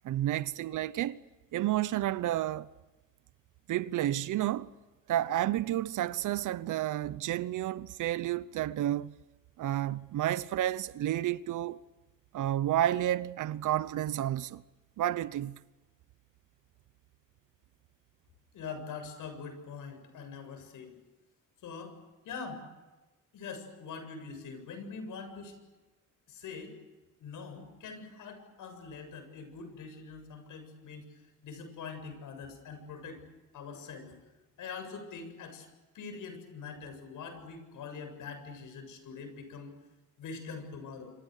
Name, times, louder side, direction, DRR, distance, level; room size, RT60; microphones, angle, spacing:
voice 1, 0.0-1.2 1.5-2.7 3.7-4.7 5.1-9.1 9.6-11.8 12.3-14.6 15.0-15.6, right 13 dB, 70° right, 0.9 m, -31 dB
voice 2, 18.5-21.0 21.6-22.0 22.2-22.6 23.3-25.6 26.3-26.8 27.2-31.1 31.4-33.2 33.5-34.2 34.6-35.7 35.9-39.7 40.2-41.1, left 5 dB, 75° left, 7.6 m, -43 dB
27.0 x 26.0 x 6.6 m
cardioid pair, 130°, 32 cm